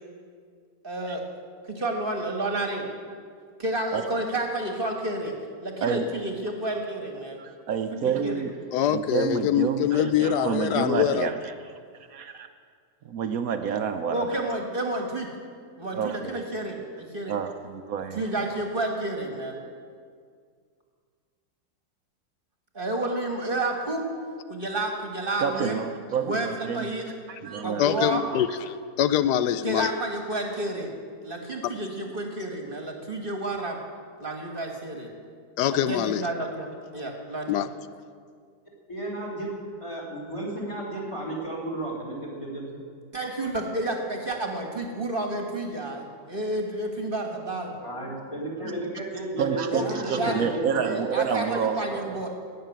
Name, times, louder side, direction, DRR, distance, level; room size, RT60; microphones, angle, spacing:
voice 1, 0.8-1.2 1.6-2.9 3.6-5.3 5.6-7.4 7.9-8.5 14.1-15.3 15.8-17.4 18.1-19.6 22.7-24.0 24.5-25.8 26.2-27.1 27.6-28.2 29.6-30.9 31.2-33.8 34.2-35.1 35.7-36.7 36.9-37.6 43.1-47.7 49.7-50.3 50.8-52.3, right 1 dB, 35° right, 3 dB, 1.6 m, -30 dB
voice 2, 7.4-8.5 8.9-11.7 12.1-12.5 13.0-14.4 15.9-16.4 17.3-18.5 25.4-26.9 27.3-27.9 49.4-52.2, right 7 dB, 65° right, 7 dB, 1.1 m, -29 dB
voice 3, 8.7-11.3 27.8-29.9 35.6-36.2 37.5-37.7, left 10 dB, 85° left, 13 dB, 1.2 m, -24 dB
voice 4, 38.9-39.5 39.8-42.6 47.8-50.8, right 1 dB, 20° left, -2 dB, 3.3 m, -33 dB
17.0 x 6.7 x 9.1 m, 2.1 s
omnidirectional pair, 1.7 m